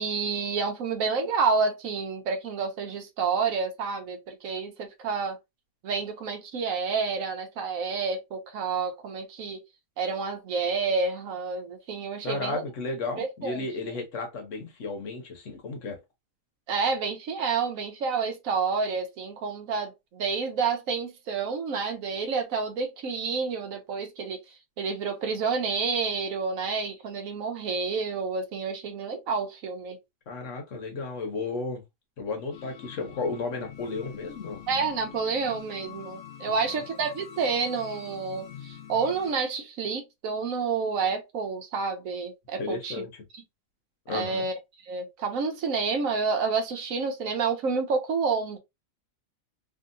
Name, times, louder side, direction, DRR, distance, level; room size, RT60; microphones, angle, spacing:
voice 1, 0.0-5.4 5.8-9.6 10.0-12.6 13.2-13.7 16.7-24.4 24.8-30.0 34.7-43.0 44.1-44.5 44.8-48.6, right 5 dB, 85° right, 1.2 m, -29 dB
voice 2, 12.2-16.0 30.3-31.8 32.2-34.6 36.5-36.6 42.6-43.2 44.1-44.5, left 3 dB, 65° left, 1.2 m, -33 dB
sound 1, 32.5-39.3, left 9 dB, 90° left, 1.1 m, -45 dB
3.0 x 2.7 x 2.6 m
omnidirectional pair, 1.4 m